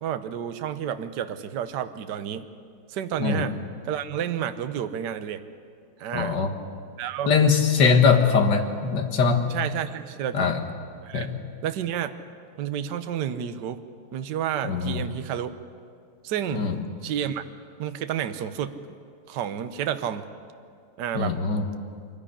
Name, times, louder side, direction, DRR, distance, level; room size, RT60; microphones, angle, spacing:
voice 1, 0.0-2.5 2.9-3.5 3.8-5.4 6.0-6.4 7.0-7.3 9.5-10.6 11.0-11.3 11.6-12.1 12.6-13.8 14.1-15.5 16.2-16.7 17.0-17.4 17.8-18.9 19.3-20.2 21.0-21.4, right 9 dB, 60° right, 10 dB, 1.4 m, -30 dB
voice 2, 6.1-6.5 7.3-9.4 10.3-10.6 11.1-11.4 14.7-15.0 16.5-16.8 21.2-21.7, left 5 dB, 55° left, 4 dB, 2.2 m, -21 dB
23.0 x 15.0 x 10.0 m, 2.3 s
omnidirectional pair, 2.3 m